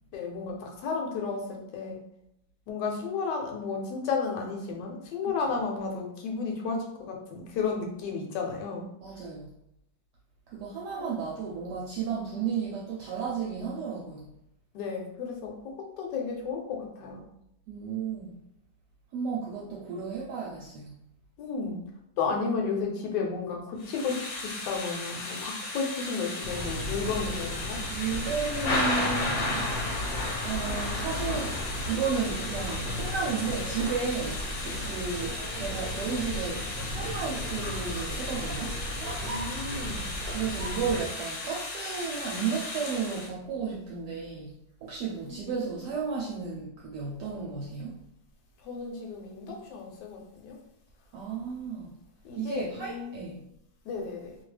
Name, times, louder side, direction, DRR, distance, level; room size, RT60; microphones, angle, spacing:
voice 1, 0.1-2.0 2.7-8.9 11.0-11.1 14.7-17.3 21.4-21.8 22.2-27.8 39.2-40.2 45.3-45.5 48.6-50.6 52.2-53.3 53.8-54.4, left 5 dB, 75° left, 1 dB, 1.2 m, -33 dB
voice 2, 9.0-9.5 10.5-14.3 17.7-18.3 19.1-21.0 27.9-29.7 30.4-31.6 31.9-34.4 34.8-38.8 40.3-44.5 44.8-48.0 51.1-51.9 52.3-53.4, right 5 dB, 70° right, -3 dB, 1.1 m, -33 dB
Thunder / Rain, 23.8-43.3, left 2 dB, 90° left, 1.4 m, -35 dB
sound 1, 26.4-41.0, equal, 50° right, 0.7 m, -36 dB
2.8 x 2.3 x 3.1 m, 0.79 s
omnidirectional pair, 2.0 m